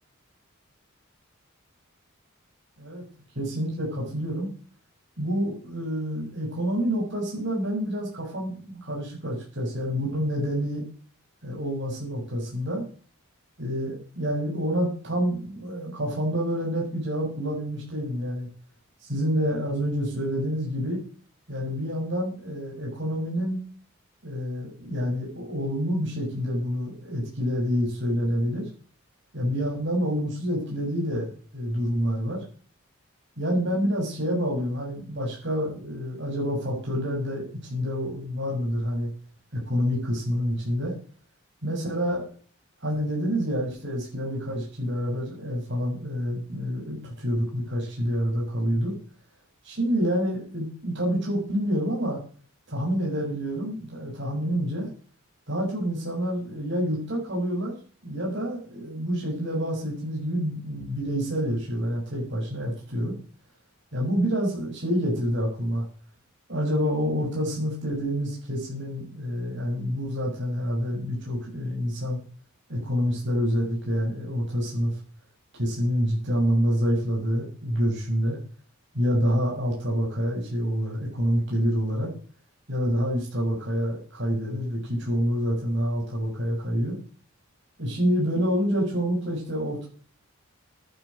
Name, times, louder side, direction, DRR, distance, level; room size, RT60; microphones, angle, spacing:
voice 1, 3.3-4.5 5.2-10.8 11.4-12.9 13.6-18.5 19.0-21.0 21.5-23.6 24.2-28.6 29.3-32.4 33.4-39.1 39.5-40.9 41.6-42.2 42.8-48.9 49.6-52.2 52.7-54.9 55.5-57.7 58.0-63.1 63.9-65.8 66.5-72.2 72.7-74.9 75.5-78.4 78.9-82.1 82.7-87.0 87.8-89.9, equal, 55° right, -3 dB, 6.6 m, -27 dB
11.5 x 10.5 x 6.5 m, 0.43 s
head